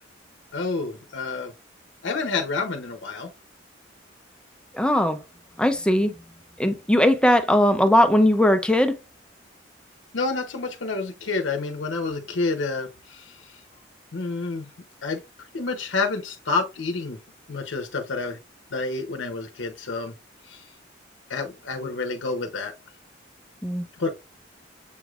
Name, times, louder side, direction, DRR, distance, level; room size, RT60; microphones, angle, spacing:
voice 1, 0.5-1.5 2.0-3.3 10.1-13.4 14.1-14.7 15.0-15.2 15.5-17.2 17.5-18.4 18.7-20.1 20.5-20.6 21.3-22.7 24.0-24.1, left 3 dB, 85° left, 0.7 m, -28 dB
voice 2, 4.7-5.2 5.6-6.1 6.6-9.0 23.6-23.8, left 1 dB, 5° left, 0.4 m, -19 dB
7.1 x 3.1 x 2.4 m
head